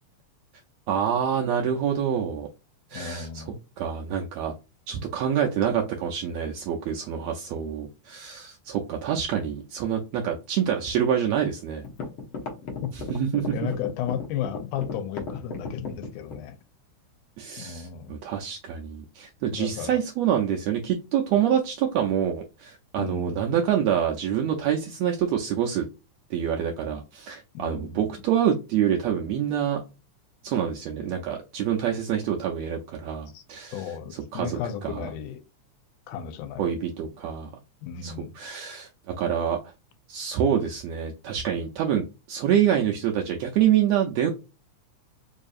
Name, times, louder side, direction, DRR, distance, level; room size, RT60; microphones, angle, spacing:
voice 1, 0.9-2.5 2.9-3.4 3.8-4.5 4.9-11.8 13.1-13.7 17.4-25.9 26.3-29.8 30.4-35.1 36.6-37.5 38.0-38.9 39.2-39.6 40.1-44.3, right 9 dB, 80° right, 1.5 m, -26 dB
voice 2, 2.9-3.6 12.8-12.9 13.5-16.6 17.6-18.2 19.5-20.0 23.0-23.4 27.5-28.1 32.1-32.2 33.3-33.4 33.7-35.4 36.1-36.8 37.8-38.3, left 8 dB, 90° left, 2.2 m, -34 dB
sound 1, 11.8-16.5, left 4 dB, 60° left, 1.4 m, -34 dB
4.8 x 2.7 x 2.4 m
omnidirectional pair, 3.5 m